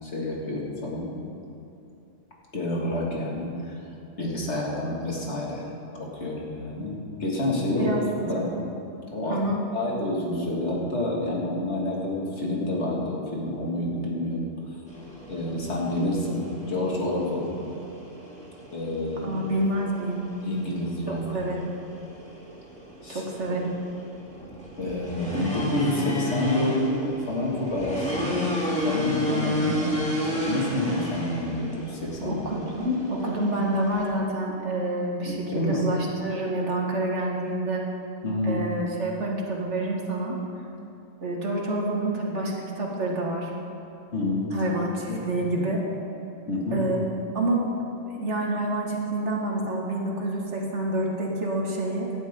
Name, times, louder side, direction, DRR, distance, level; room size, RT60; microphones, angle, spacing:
voice 1, 0.0-1.1 2.5-3.8 4.2-5.6 5.9-7.9 8.2-8.5 9.1-9.4 9.7-14.5 15.3-17.5 18.7-19.4 20.4-21.5 23.0-23.2 24.8-27.0 27.3-32.4 35.3-35.8 38.2-38.6 44.1-44.6 45.1-45.2 46.5-46.8, left 1 dB, 70° left, -4 dB, 2.7 m, -28 dB
voice 2, 7.7-8.0 8.4-8.6 9.3-9.6 19.2-20.2 21.3-21.8 23.1-23.7 32.2-37.8 38.4-40.4 41.2-43.5 44.5-45.8 46.7-47.0 47.3-47.7 48.1-52.1, right 1 dB, 80° right, -2 dB, 2.2 m, -28 dB
sound 1, 14.9-34.1, left 1 dB, 5° left, 2.6 m, -33 dB
18.0 x 11.5 x 3.8 m, 2.7 s
omnidirectional pair, 1.2 m